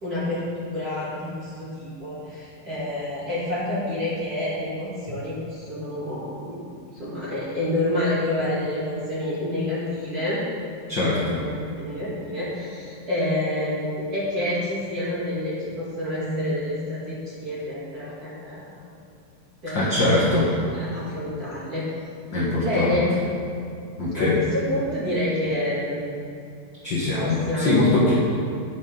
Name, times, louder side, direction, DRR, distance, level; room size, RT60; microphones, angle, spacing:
voice 1, 0.0-6.6 6.9-10.4 11.1-18.8 19.6-20.3 20.7-21.9 22.6-23.1 24.2-26.1 27.2-28.0, left 1 dB, 35° right, -9 dB, 1.7 m, -28 dB
voice 2, 10.9-11.4 19.7-20.5 22.3-23.0 24.0-24.4 26.8-28.1, left 2 dB, 60° left, -6 dB, 1.1 m, -22 dB
9.9 x 6.1 x 5.3 m, 2.5 s
omnidirectional pair, 3.9 m